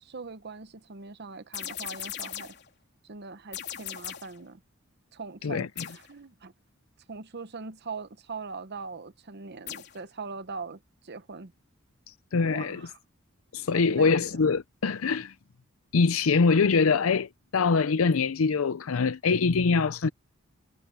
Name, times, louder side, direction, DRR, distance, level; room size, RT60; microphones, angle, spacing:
voice 1, 0.0-2.5 3.0-4.6 5.1-6.5 7.1-11.5 12.4-13.0 13.7-14.5, right 4 dB, 50° right, 0.9 m, -41 dB
sound 1, 1.5-2.7 3.5-4.4 5.8-6.1 9.7-10.0, left 10 dB, 55° left, 3.7 m, -38 dB
voice 2, 12.1-12.9 13.5-15.3 15.9-20.1, left 4 dB, 85° left, 0.6 m, -24 dB
head